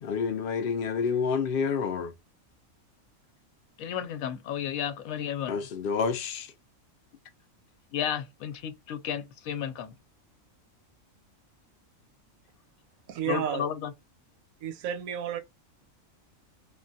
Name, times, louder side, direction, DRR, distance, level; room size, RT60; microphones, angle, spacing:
voice 1, 0.0-2.1 5.5-6.5, left 5 dB, 70° left, 0.5 m, -28 dB
voice 2, 3.8-5.7 7.9-9.9 13.2-13.9, left 9 dB, 85° left, 1.0 m, -33 dB
voice 3, 13.1-13.6 14.6-15.4, right 9 dB, 85° right, 1.0 m, -31 dB
3.1 x 2.2 x 2.6 m
omnidirectional pair, 1.4 m